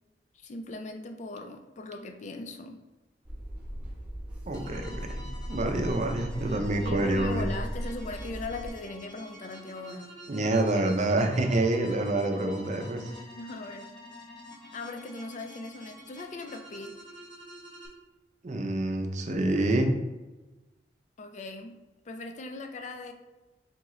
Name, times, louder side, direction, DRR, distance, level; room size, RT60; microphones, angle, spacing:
voice 1, 0.3-2.8 6.8-10.1 13.1-13.9 14.7-16.9 21.2-21.8 22.1-23.1, left 2 dB, 40° left, 5 dB, 0.4 m, -39 dB
sound 1, 3.2-8.7, equal, 5° right, 0.8 m, -37 dB
sound 2, 4.5-17.9, left 1 dB, 25° left, 1.0 m, -48 dB
voice 2, 4.5-7.4 10.3-13.0 18.4-19.9, right 2 dB, 40° right, 4 dB, 0.5 m, -27 dB
3.8 x 3.7 x 3.0 m, 1.1 s
head